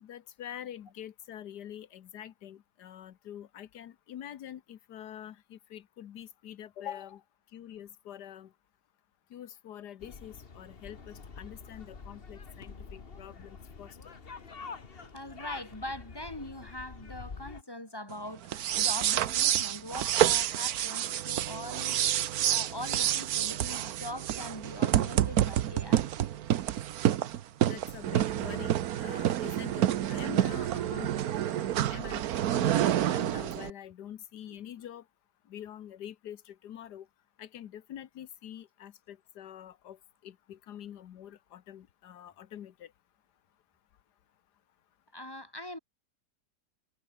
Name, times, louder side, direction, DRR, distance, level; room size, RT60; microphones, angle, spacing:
voice 1, 0.0-7.2 7.5-8.5 9.3-14.1 27.6-32.8 33.1-35.0 35.5-37.1 37.4-40.0 40.2-42.9, left 10 dB, 85° left, 1.6 m, -45 dB
sound 1, 10.0-17.6, left 5 dB, 35° left, 1.7 m, -46 dB
voice 2, 14.9-22.0 22.4-26.1 30.8-30.9 34.5-34.6 45.1-45.8, left 1 dB, 15° left, 4.5 m, -42 dB
sound 2, 18.4-33.7, right 11 dB, 70° right, 1.3 m, -28 dB
omnidirectional pair, 1.7 m